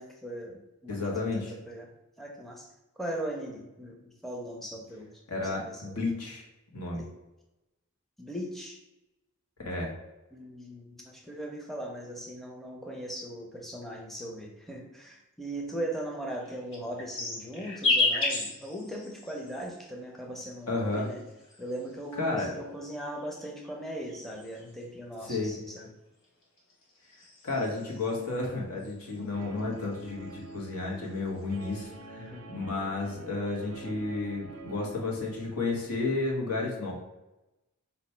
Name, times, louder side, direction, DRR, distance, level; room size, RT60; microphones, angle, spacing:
voice 1, 0.0-1.9 2.2-2.7 3.0-5.1 5.4-5.9 6.9-7.1 8.2-8.8 10.3-21.2 21.6-25.9 32.2-32.4, right 1 dB, ahead, -1 dB, 0.5 m, -39 dB
voice 2, 0.9-1.5 5.3-6.4 6.7-7.0 9.6-9.9 20.7-21.1 22.2-22.5 25.3-25.5 27.4-36.9, left 3 dB, 85° left, -1 dB, 1.1 m, -32 dB
sound 1, 16.4-19.8 20.8-22.1 23.0-24.8 26.2-28.4 28.8-29.3 29.6-30.7 31.0-31.6, left 3 dB, 60° left, 1.0 m, -33 dB
Guitar, 29.3-35.9, right 3 dB, 85° right, 0.6 m, -47 dB
4.1 x 2.3 x 4.2 m, 1.0 s
head